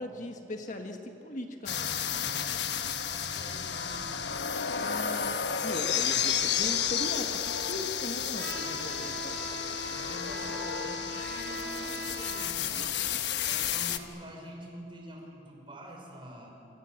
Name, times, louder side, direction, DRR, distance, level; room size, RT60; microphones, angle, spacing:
voice 1, 0.0-2.0 4.8-9.4, left 1 dB, 45° left, 4 dB, 1.6 m, -39 dB
sound 1, 1.7-14.0, left 8 dB, 75° left, 1.2 m, -32 dB
voice 2, 1.9-4.1 8.6-9.1 9.9-12.9 13.4-16.5, equal, 30° right, 1 dB, 5.3 m, -47 dB
Trumpet, 8.3-12.6, right 1 dB, 60° right, 4.5 m, -40 dB
27.5 x 25.0 x 7.3 m, 2.8 s
head